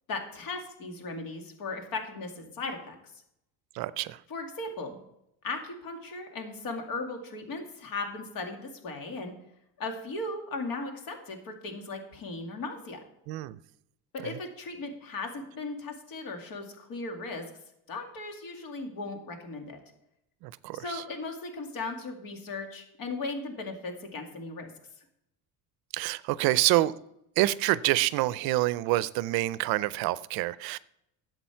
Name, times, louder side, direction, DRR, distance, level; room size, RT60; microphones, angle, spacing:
voice 1, 0.1-2.9 4.3-5.0 5.4-9.3 9.8-13.0 14.1-17.4 17.9-19.8 20.7-24.7, left 3 dB, 60° left, 4 dB, 2.3 m, -37 dB
voice 2, 3.8-4.2 13.3-13.6 14.2-14.3 20.4-21.0 25.9-26.9 27.4-30.8, right 17 dB, 70° right, 17 dB, 0.5 m, -27 dB
11.5 x 8.0 x 4.5 m, 0.80 s
cardioid pair, 135°, 38 cm